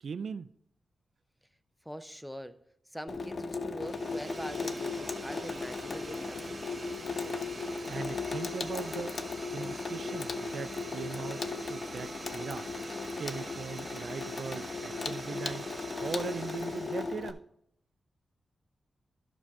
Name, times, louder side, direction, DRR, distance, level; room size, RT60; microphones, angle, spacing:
voice 1, 0.0-0.5 7.9-9.2 9.5-12.7 13.2-15.7 16.0-17.4, right 6 dB, 70° right, 0.4 m, -39 dB
voice 2, 1.8-2.6 2.9-6.6, equal, ahead, 0.6 m, -43 dB
Water tap faucet / Sink (filling or washing), 3.1-17.3, left 4 dB, 50° left, 0.6 m, -37 dB
sound 1, 3.8-17.3, right 3 dB, 35° right, 1.3 m, -46 dB
11.5 x 6.1 x 3.6 m
cardioid pair, 85°, 0 cm